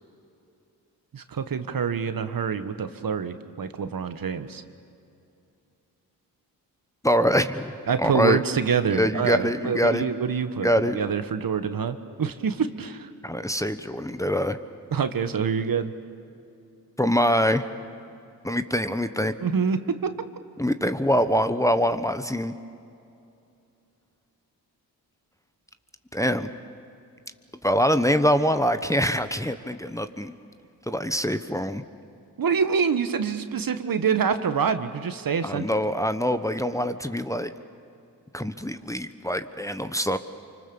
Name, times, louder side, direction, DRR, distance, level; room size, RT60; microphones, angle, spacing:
voice 1, 1.1-4.6 7.9-13.1 14.9-15.9 19.4-20.1 32.4-35.7, right 6 dB, 50° right, 10 dB, 1.4 m, -26 dB
voice 2, 7.0-8.4 8.9-10.1 10.6-11.0 13.2-14.6 17.0-17.6 18.4-19.3 20.6-22.5 26.1-26.5 27.6-30.3 30.9-31.8 35.4-37.5 38.3-40.2, equal, 5° left, 9 dB, 1.1 m, -24 dB
25.0 x 25.0 x 7.0 m, 2.6 s
supercardioid pair, 45°, 42 cm